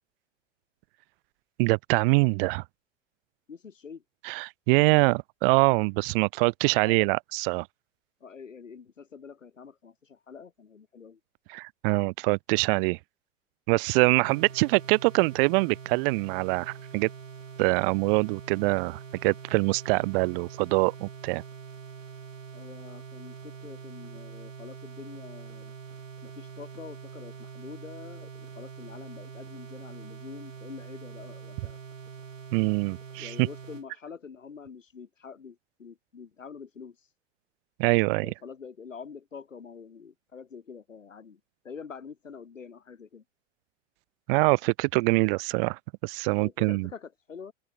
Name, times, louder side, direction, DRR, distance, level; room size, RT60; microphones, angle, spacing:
voice 1, 1.6-2.6 4.2-7.7 11.5-13.0 13.7-17.1 17.6-21.4 32.5-33.5 37.8-38.3 44.3-46.9, right 29 dB, 50° right, 0.8 m, -24 dB
voice 2, 3.5-4.0 6.8-7.1 8.2-11.2 22.5-25.8 26.2-31.8 33.2-37.0 38.2-43.2 46.4-47.5, left 6 dB, 90° left, 5.1 m, -45 dB
sound 1, 14.2-33.9, right 6 dB, 90° right, 2.4 m, -44 dB
open air
hypercardioid pair, 95°, 37 cm